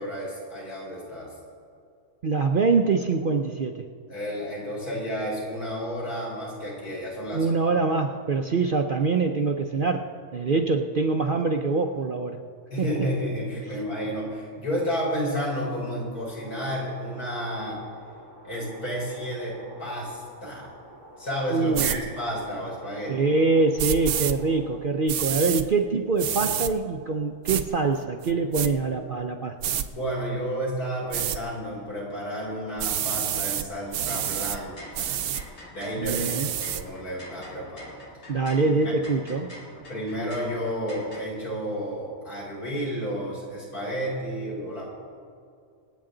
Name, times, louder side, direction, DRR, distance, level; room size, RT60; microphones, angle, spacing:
voice 1, 0.0-1.3 4.1-7.5 12.7-17.8 18.4-20.7 21.2-23.3 29.9-35.2 35.7-36.3 36.6-38.0 38.6-39.0 39.9-44.9, equal, 80° left, -5 dB, 4.9 m, -31 dB
voice 2, 2.2-3.8 7.3-12.4 12.8-12.9 21.5-22.1 23.1-29.6 36.0-36.5 38.3-39.5, right 4 dB, 50° right, 4 dB, 0.6 m, -24 dB
sound 1, 16.4-24.8, right 1 dB, 15° right, 4.1 m, -49 dB
sound 2, 21.7-22.0 23.8-24.3 25.1-25.6 26.2-26.7 27.5-27.6 28.2-28.7 29.6-29.9 31.1-31.4 32.8-33.7 33.9-34.6 34.9-35.4 36.0-36.8, right 10 dB, 85° right, 1.2 m, -28 dB
sound 3, 33.8-41.2, left 1 dB, 45° left, 2.4 m, -45 dB
26.0 x 8.8 x 3.8 m, 2.3 s
omnidirectional pair, 1.6 m